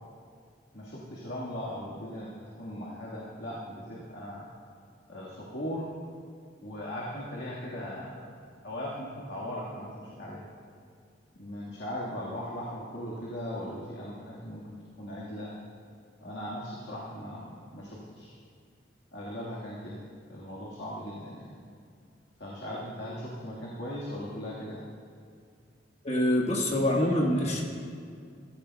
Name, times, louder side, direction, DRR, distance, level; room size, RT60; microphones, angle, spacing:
voice 1, 0.7-4.5 5.1-5.9 6.6-8.3 8.6-10.5 11.4-15.5 16.2-18.4 19.1-20.0 20.3-21.6 22.4-24.8, equal, 65° left, -6 dB, 1.7 m, -38 dB
voice 2, 26.0-27.6, left 1 dB, 35° left, -1 dB, 1.4 m, -25 dB
15.0 x 15.0 x 2.3 m, 2.3 s
head